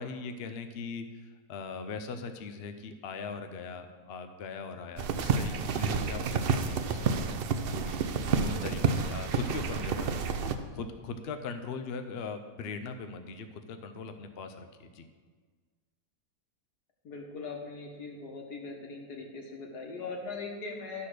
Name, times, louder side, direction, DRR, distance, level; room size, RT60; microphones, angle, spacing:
voice 1, 0.0-7.4 7.7-10.4 10.7-15.0, left 4 dB, 55° left, 8 dB, 0.7 m, -40 dB
sound 1, 5.0-10.6, right 5 dB, 85° right, 0.5 m, -29 dB
voice 2, 8.2-8.6 17.0-21.1, left 4 dB, 85° left, 1 dB, 1.9 m, -40 dB
12.0 x 4.2 x 6.4 m, 1.5 s
omnidirectional pair, 1.7 m